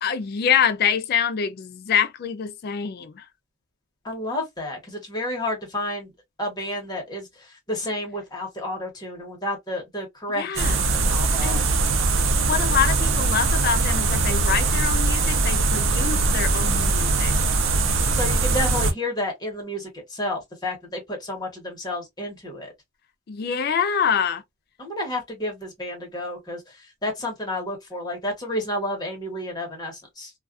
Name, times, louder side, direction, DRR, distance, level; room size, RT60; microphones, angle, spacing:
voice 1, 0.0-3.3 10.4-10.8 11.4-11.7 12.4-17.3 23.3-24.4, left 7 dB, 50° left, 0.4 m, -25 dB
voice 2, 4.0-6.1 6.4-11.7 18.1-22.7 24.8-26.6 27.0-30.3, left 1 dB, 20° left, 1.0 m, -31 dB
sound 1, 10.6-18.9, right 3 dB, 65° right, 0.5 m, -21 dB
2.3 x 2.3 x 2.4 m
head